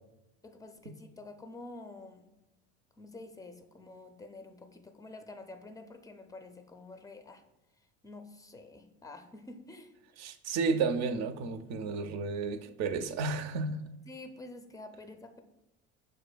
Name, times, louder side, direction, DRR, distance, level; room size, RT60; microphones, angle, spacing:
voice 1, 0.4-2.3 3.0-7.4 8.0-9.9 14.1-15.4, left 2 dB, 10° left, 0.4 m, -48 dB
voice 2, 10.2-13.8, right 4 dB, 55° right, 0.5 m, -32 dB
6.2 x 2.5 x 2.2 m
supercardioid pair, 80°, 32 cm